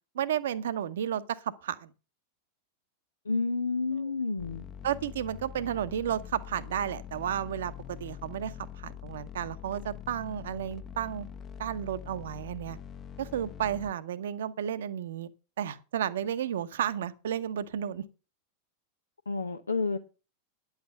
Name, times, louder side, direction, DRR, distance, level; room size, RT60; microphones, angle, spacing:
voice 1, 0.1-1.9 4.0-4.1 4.8-11.3 11.6-12.8 13.2-15.3 15.6-18.1, right 10 dB, 60° right, 0.9 m, -32 dB
voice 2, 3.2-4.7 19.3-20.0, left 4 dB, 75° left, 0.8 m, -30 dB
sound 1, 4.4-13.9, left 9 dB, 30° left, 0.9 m, -44 dB
10.5 x 8.3 x 6.7 m
figure-of-eight pair, 90°, 0 cm